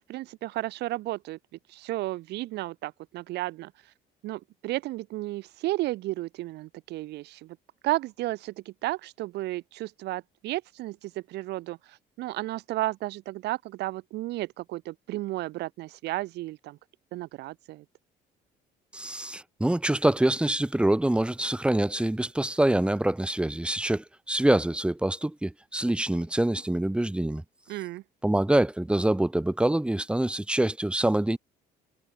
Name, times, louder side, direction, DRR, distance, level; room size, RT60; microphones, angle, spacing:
voice 1, 0.0-1.4 1.7-3.9 4.2-7.6 7.8-16.8 17.1-17.8 27.7-28.0, right 17 dB, 80° right, 2.3 m, -33 dB
voice 2, 18.9-27.4 28.2-31.4, right 1 dB, 5° right, 1.0 m, -25 dB
cardioid pair, 110°, 17 cm